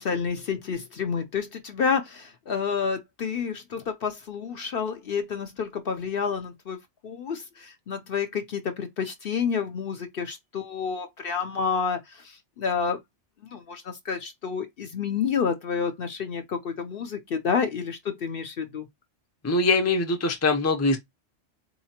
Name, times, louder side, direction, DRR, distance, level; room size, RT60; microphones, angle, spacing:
voice 1, 0.0-6.8 7.0-13.0 13.5-18.9, left 6 dB, 60° left, 0.7 m, -29 dB
voice 2, 19.4-21.0, left 3 dB, 20° left, 0.5 m, -22 dB
4.1 x 2.8 x 2.8 m
omnidirectional pair, 1.2 m